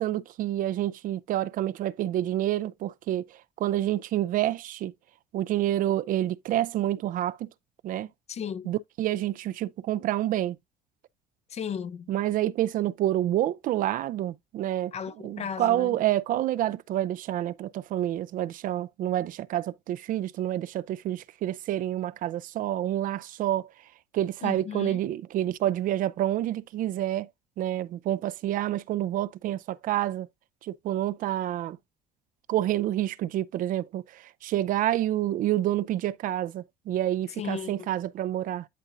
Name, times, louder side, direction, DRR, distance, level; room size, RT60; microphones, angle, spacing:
voice 1, 0.0-3.2 3.6-4.9 5.3-7.5 7.8-8.1 8.7-10.6 12.1-14.9 15.2-23.7 24.1-27.3 27.6-30.3 30.6-31.8 32.5-38.7, right 13 dB, 55° right, 0.4 m, -28 dB
voice 2, 8.3-8.7 11.5-12.1 14.9-16.0 24.4-25.0 37.4-37.9, left 7 dB, 40° left, 0.5 m, -35 dB
11.0 x 3.7 x 2.6 m
hypercardioid pair, 70°, 17 cm